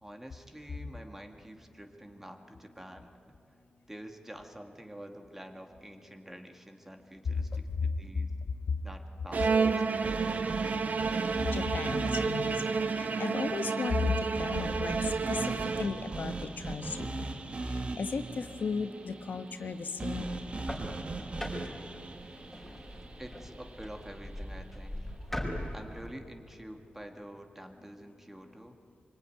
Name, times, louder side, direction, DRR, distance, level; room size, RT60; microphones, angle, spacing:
voice 1, 0.0-3.1 3.9-8.3 8.8-10.1 23.2-25.2 25.7-28.8, right 1 dB, 10° right, 4 dB, 1.8 m, -47 dB
voice 2, 7.2-7.9 8.5-8.6 11.2-20.4 27.8-27.9, left 5 dB, 75° left, 8 dB, 1.2 m, -35 dB
Bowed string instrument, 9.3-16.3, right 4 dB, 60° right, 1.1 m, -30 dB
sound 1, 10.0-24.2, right 3 dB, 40° right, 1.4 m, -40 dB
sound 2, 20.3-26.1, left 1 dB, 5° left, 5.1 m, -41 dB
25.0 x 24.5 x 9.3 m, 2.6 s
wide cardioid pair, 140°, 3 cm